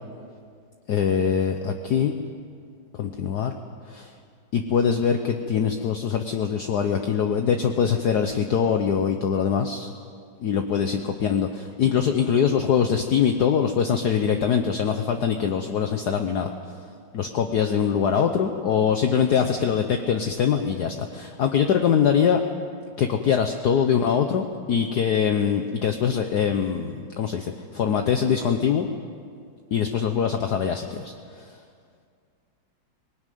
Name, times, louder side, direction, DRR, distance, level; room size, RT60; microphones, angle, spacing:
voice 1, 0.9-2.1 2.9-3.5 3.9-4.1 4.5-9.9 10.4-16.5 17.1-22.4 23.0-28.9 29.7-31.5, left 7 dB, 60° left, 5 dB, 1.3 m, -23 dB
20.0 x 19.0 x 9.3 m, 2.2 s
omnidirectional pair, 2.2 m